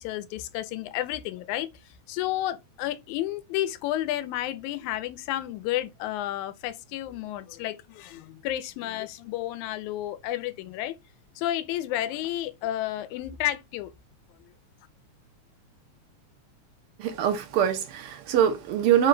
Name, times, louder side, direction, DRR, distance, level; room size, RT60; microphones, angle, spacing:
voice 1, 0.0-1.7 2.1-11.0 11.4-13.9, left 13 dB, 90° left, 2.0 m, -31 dB
voice 2, 17.0-19.1, right 9 dB, 80° right, 1.3 m, -23 dB
4.9 x 2.2 x 3.7 m
omnidirectional pair, 3.3 m